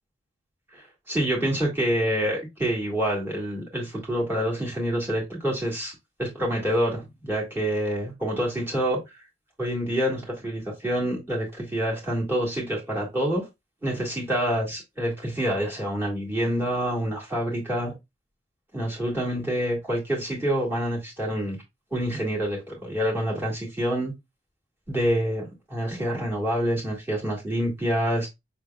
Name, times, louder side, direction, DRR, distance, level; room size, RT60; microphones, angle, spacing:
voice 1, 0.7-9.2 9.6-13.5 13.8-17.9 18.7-21.6 21.9-24.1 24.9-28.3, equal, 10° right, 1.7 m, -27 dB
5.8 x 3.2 x 2.2 m
head